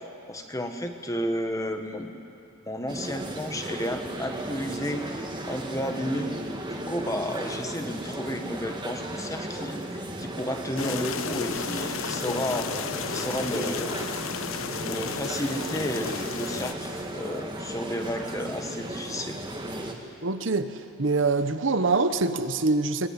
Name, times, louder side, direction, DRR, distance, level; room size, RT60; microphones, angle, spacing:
voice 1, 0.3-2.3 2.7-6.3 6.7-12.7 13.1-14.0 14.8-19.4, equal, 15° left, 5 dB, 1.4 m, -32 dB
sound 1, 2.9-19.9, right 1 dB, 20° right, 1.8 m, -35 dB
sound 2, 10.8-16.7, left 6 dB, 80° left, 0.8 m, -33 dB
voice 2, 20.2-23.1, right 3 dB, 65° right, 10 dB, 1.0 m, -25 dB
23.5 x 19.0 x 9.7 m, 2.7 s
head